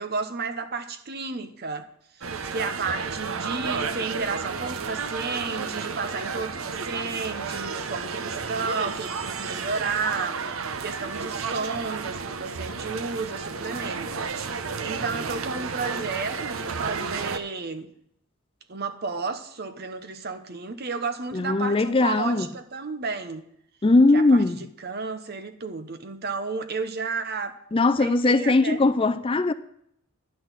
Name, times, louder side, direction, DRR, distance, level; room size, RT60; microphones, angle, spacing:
voice 1, 0.0-1.9 2.2-14.3 14.8-17.9 18.7-23.4 24.1-24.4 24.8-27.6 28.0-28.8, right 4 dB, 50° right, 1.0 m, -32 dB
sound 1, 2.2-17.4, right 5 dB, 75° right, 0.8 m, -32 dB
voice 2, 21.3-22.5 23.8-24.6 27.7-29.5, left 2 dB, 25° left, 0.4 m, -20 dB
11.0 x 6.0 x 8.3 m
head